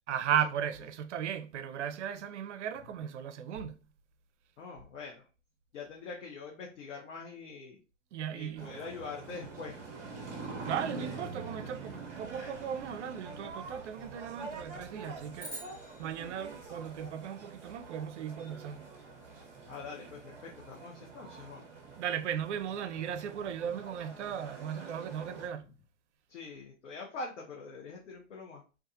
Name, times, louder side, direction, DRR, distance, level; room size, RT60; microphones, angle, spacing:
voice 1, 0.1-3.8 8.1-8.8 10.7-15.6 16.0-18.9 22.0-25.7, right 9 dB, 70° right, 0.5 m, -36 dB
voice 2, 4.6-5.3 5.7-7.8 8.3-9.8 19.7-21.6 26.3-28.6, left 4 dB, 75° left, 0.8 m, -44 dB
sound 1, 8.6-25.5, right 4 dB, 20° right, 0.8 m, -45 dB
sound 2, 15.4-17.8, right 2 dB, 5° left, 0.5 m, -48 dB
2.5 x 2.4 x 2.7 m
hypercardioid pair, 135°, 37 cm